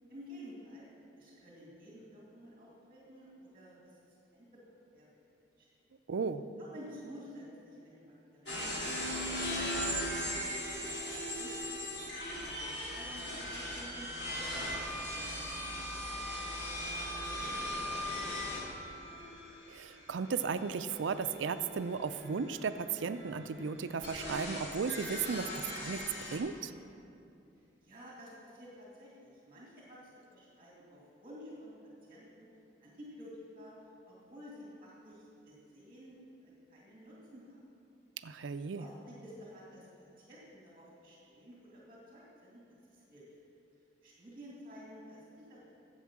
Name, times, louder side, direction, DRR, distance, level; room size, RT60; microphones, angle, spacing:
voice 1, 0.1-0.9 1.2-4.6 4.9-5.3 5.6-5.7 6.6-9.8 10.1-11.5 12.4-16.9 17.1-17.4 17.7-18.6 27.6-30.0 30.3-32.5 32.8-33.7 34.1-37.6 38.7-43.4 44.0-45.6, equal, 30° right, -5 dB, 2.4 m, -52 dB
voice 2, 6.1-6.4 19.7-26.7 38.2-38.8, right 5 dB, 85° right, 11 dB, 0.5 m, -35 dB
sound 1, 8.5-26.4, equal, 65° left, 3.0 m, -39 dB
11.0 x 7.7 x 7.3 m, 2.7 s
head